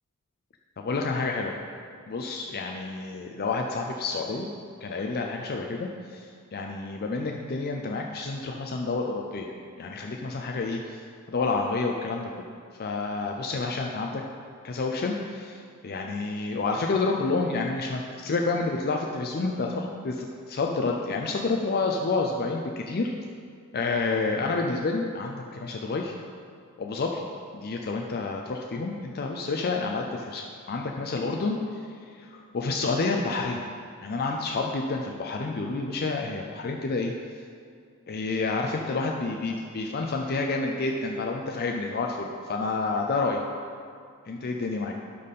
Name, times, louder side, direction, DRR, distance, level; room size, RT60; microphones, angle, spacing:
voice 1, 0.8-1.5 2.1-4.5 4.8-9.5 9.8-11.0 11.3-12.3 12.8-14.2 14.6-23.1 23.7-26.1 26.8-27.2 27.5-31.9 32.2-33.6 34.0-37.1 38.1-43.4 44.3-44.9, left 3 dB, 45° left, 2 dB, 0.5 m, -29 dB
11.5 x 4.2 x 5.4 m, 2.2 s
head